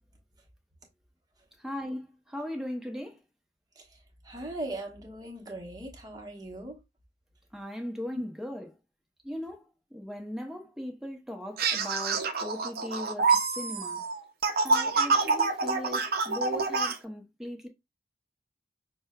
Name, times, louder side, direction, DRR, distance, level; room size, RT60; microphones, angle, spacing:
voice 1, 1.6-3.2 7.5-8.8 9.2-14.0 14.6-17.7, equal, 5° right, 0.7 m, -38 dB
voice 2, 4.2-6.8, right 1 dB, 20° right, 1.0 m, -39 dB
sound 1, 11.6-17.0, right 4 dB, 55° right, 0.6 m, -27 dB
6.1 x 2.2 x 2.3 m
head